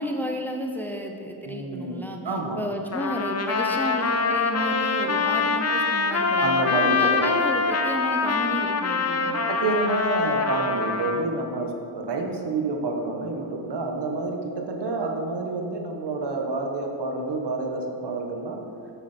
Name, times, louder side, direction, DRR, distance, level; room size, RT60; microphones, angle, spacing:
voice 1, 0.0-9.4, equal, 5° left, 2 dB, 0.9 m, -32 dB
voice 2, 1.4-2.6 6.4-7.3 9.5-18.6, right 3 dB, 60° right, 2 dB, 1.5 m, -28 dB
Trumpet, 2.9-11.2, left 4 dB, 30° left, 0.9 m, -24 dB
9.3 x 8.8 x 4.5 m, 2.6 s
cardioid pair, 85°, 47 cm